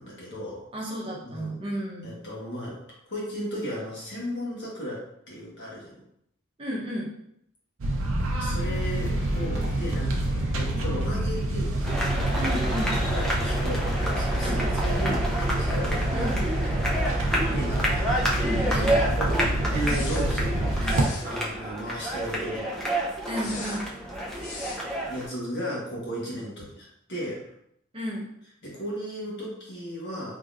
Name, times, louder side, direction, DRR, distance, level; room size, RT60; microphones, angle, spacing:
voice 1, 0.0-0.6 1.2-1.5 2.0-6.0 8.4-12.0 12.8-16.3 16.6-16.9 17.2-18.2 19.2-19.4 19.7-22.7 23.3-23.4 25.1-27.4 28.6-30.4, equal, 55° left, -5 dB, 1.3 m, -35 dB
voice 2, 0.7-2.1 6.6-7.1 12.4-13.0 14.4-14.7 16.1-16.4 18.4-19.5 20.8-21.1 23.3-23.9 27.9-28.3, equal, 25° right, -4 dB, 0.8 m, -33 dB
sound 1, 7.8-21.1, right 1 dB, 70° right, 0.6 m, -27 dB
sound 2, 8.6-17.7 18.0-18.1 19.8-20.3 20.8-21.3 23.3-23.8 24.3-24.8, left 4 dB, 85° left, 0.7 m, -43 dB
sound 3, 11.8-25.3, right 1 dB, 5° left, 0.5 m, -29 dB
3.6 x 2.9 x 2.5 m, 0.74 s
head